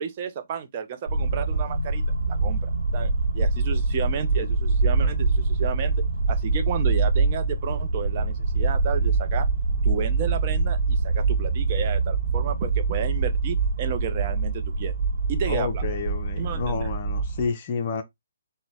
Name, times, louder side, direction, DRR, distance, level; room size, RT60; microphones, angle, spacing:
voice 1, 0.0-2.0 2.3-5.9 6.3-9.5 9.8-14.9 15.3-15.8 16.4-16.9, right 7 dB, 35° right, 0.5 m, -32 dB
sound 1, 1.1-17.5, right 3 dB, 60° right, 0.9 m, -24 dB
voice 2, 15.5-18.0, left 5 dB, 35° left, 0.5 m, -30 dB
3.9 x 2.1 x 3.4 m
figure-of-eight pair, 135°, 0 cm